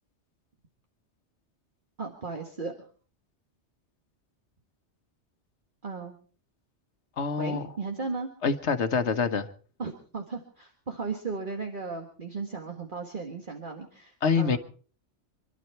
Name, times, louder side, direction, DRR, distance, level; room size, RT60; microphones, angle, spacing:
voice 1, 2.0-2.7 5.8-6.2 7.4-8.3 9.8-14.6, right 4 dB, 45° right, 1.8 m, -36 dB
voice 2, 7.2-7.7 8.4-9.5 14.2-14.6, left 5 dB, 70° left, 1.4 m, -26 dB
26.0 x 12.0 x 4.5 m
omnidirectional pair, 1.2 m